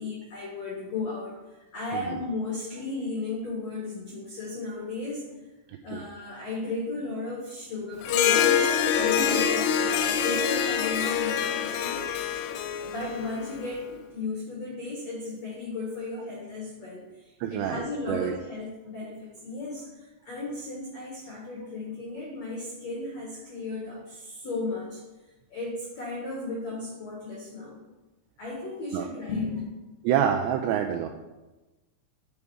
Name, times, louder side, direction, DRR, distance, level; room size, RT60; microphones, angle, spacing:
voice 1, 0.0-1.4 1.7-5.2 5.8-12.4 12.8-25.0 25.5-27.8 28.4-29.7, left 3 dB, 70° left, -4 dB, 1.6 m, -35 dB
voice 2, 5.7-6.0 17.4-18.3 28.9-29.1 30.0-31.1, right 9 dB, 85° right, 4 dB, 2.5 m, -27 dB
Harp, 8.0-13.7, left 8 dB, 85° left, 3.2 m, -25 dB
9.6 x 5.4 x 4.8 m, 1.1 s
omnidirectional pair, 5.5 m